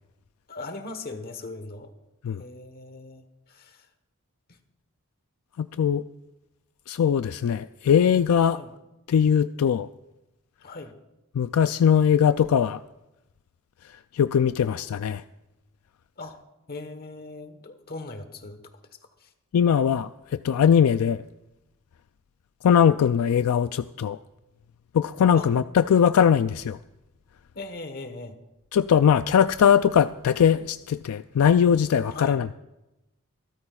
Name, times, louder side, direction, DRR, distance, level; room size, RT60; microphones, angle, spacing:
voice 1, 0.5-1.9 2.4-3.9 8.5-8.7 10.6-10.9 16.2-16.4 16.7-18.6 19.2-19.3 25.3-25.5 27.5-28.3 32.1-32.4, left 2 dB, 45° left, 8 dB, 1.2 m, -39 dB
voice 2, 5.6-6.0 6.9-8.6 9.1-9.9 11.3-12.8 14.1-15.2 19.5-21.2 22.6-24.2 24.9-26.8 28.7-32.5, left 8 dB, 75° left, 12 dB, 0.3 m, -20 dB
26.5 x 13.0 x 2.4 m, 0.98 s
head